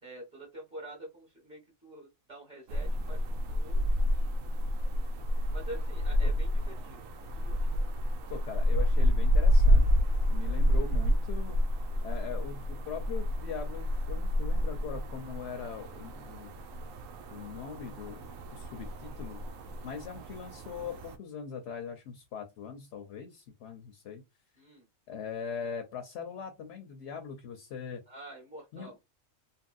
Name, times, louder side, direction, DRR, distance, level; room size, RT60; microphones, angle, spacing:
voice 1, 0.0-3.8 5.5-7.8 24.6-24.9 28.1-29.0, right 1 dB, 5° right, 0 dB, 0.9 m, -47 dB
sound 1, 2.7-21.2, equal, 90° right, 1.0 m, -29 dB
voice 2, 8.3-9.9 10.3-11.6 12.0-16.5 17.3-19.4 19.8-24.2 25.1-28.0 28.7-28.9, left 7 dB, 65° left, 6 dB, 0.8 m, -41 dB
2.8 x 2.6 x 2.4 m, 0.23 s
omnidirectional pair, 1.3 m